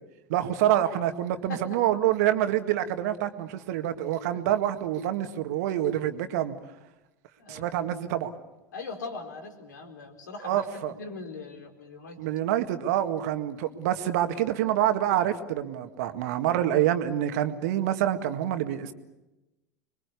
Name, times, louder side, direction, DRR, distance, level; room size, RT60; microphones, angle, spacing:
voice 1, 0.3-6.6 7.5-8.3 10.4-10.9 12.2-18.9, right 12 dB, 60° right, 8 dB, 1.9 m, -26 dB
voice 2, 7.4-7.7 8.7-12.2, left 3 dB, 80° left, 4 dB, 4.3 m, -40 dB
26.0 x 22.5 x 8.4 m, 0.99 s
figure-of-eight pair, 80°, 10 cm